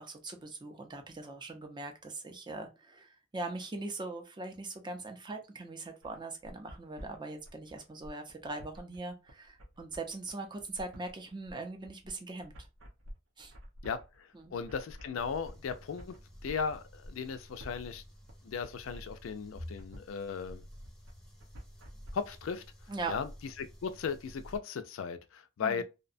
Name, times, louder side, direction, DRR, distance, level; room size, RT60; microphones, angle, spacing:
voice 1, 0.0-12.7 13.4-13.5 14.3-14.5 22.9-23.1 25.6-25.8, right 3 dB, 25° right, 0.5 m, -41 dB
sound 1, 6.0-22.1, equal, 85° right, 0.7 m, -51 dB
voice 2, 13.8-16.1 16.4-18.0 18.4-20.6 22.1-22.6 23.1-23.3 23.6-25.8, left 6 dB, 90° left, 0.4 m, -36 dB
sound 2, 15.2-24.6, equal, 5° left, 0.7 m, -51 dB
2.7 x 2.1 x 2.5 m
head